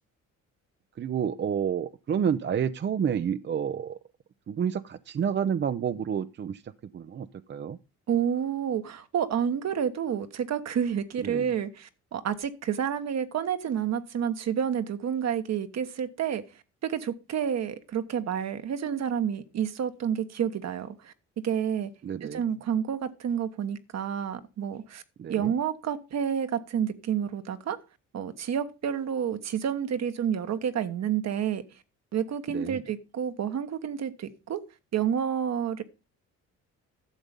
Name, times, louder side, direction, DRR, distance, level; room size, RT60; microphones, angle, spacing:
voice 1, 1.0-4.0 4.5-7.8 11.2-11.5 22.0-22.4 25.2-25.5 32.5-32.8, right 8 dB, 40° right, 0.5 m, -30 dB
voice 2, 8.1-16.4 16.8-21.9 22.2-25.0 25.3-27.8 28.1-31.6 32.1-34.6 34.9-35.8, right 8 dB, 60° right, 1.2 m, -29 dB
12.0 x 7.0 x 5.1 m
cardioid pair, 90°, 30 cm